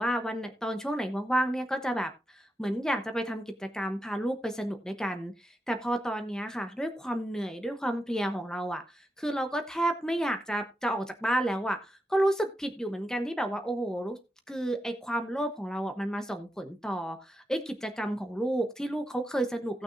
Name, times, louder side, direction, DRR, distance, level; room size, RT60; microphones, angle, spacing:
voice 1, 0.0-2.1 2.6-5.3 5.7-8.8 9.2-14.2 14.5-19.8, right 1 dB, 5° left, 6 dB, 1.0 m, -31 dB
17.5 x 6.1 x 2.6 m, 0.27 s
head